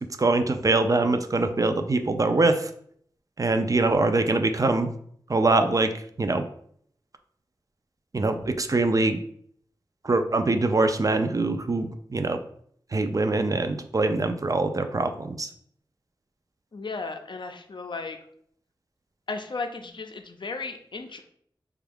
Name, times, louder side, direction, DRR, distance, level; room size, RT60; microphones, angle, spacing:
voice 1, 0.2-2.7 3.4-4.9 5.3-5.9 6.2-6.5 8.1-9.2 10.0-12.4 12.9-15.5, right 2 dB, 40° right, 7 dB, 0.3 m, -23 dB
voice 2, 16.7-18.2 19.3-21.2, left 3 dB, 65° left, 6 dB, 0.4 m, -35 dB
3.3 x 2.3 x 3.4 m, 0.65 s
wide cardioid pair, 50°, 9 cm